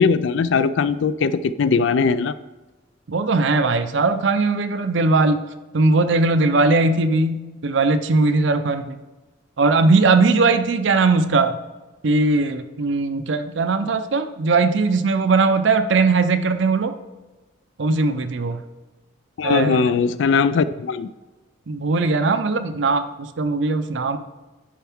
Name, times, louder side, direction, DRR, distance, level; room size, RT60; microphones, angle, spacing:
voice 1, 0.0-2.3 19.4-21.1, left 5 dB, 65° left, 14 dB, 0.4 m, -19 dB
voice 2, 3.1-5.4 5.7-9.0 9.6-11.6 12.0-16.9 17.8-18.6 19.4-19.9 21.7-24.2, right 3 dB, 65° right, 9 dB, 0.6 m, -19 dB
10.0 x 4.6 x 3.6 m, 1.1 s
head